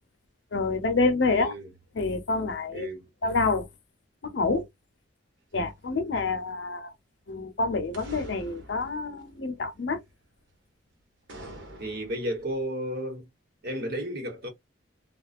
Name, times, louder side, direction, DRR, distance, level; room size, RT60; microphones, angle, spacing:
voice 1, 0.5-1.5 1.9-2.9 3.2-3.7 4.2-4.6 5.5-6.9 7.3-10.0, left 3 dB, 70° left, 0.7 m, -27 dB
voice 2, 1.3-1.7 2.7-3.1 11.8-13.3 13.6-14.5, equal, 55° right, 1.2 m, -33 dB
sound 1, 5.9-6.0 7.9-10.1 11.3-12.6, right 1 dB, 75° right, 1.0 m, -46 dB
2.4 x 2.1 x 2.5 m
head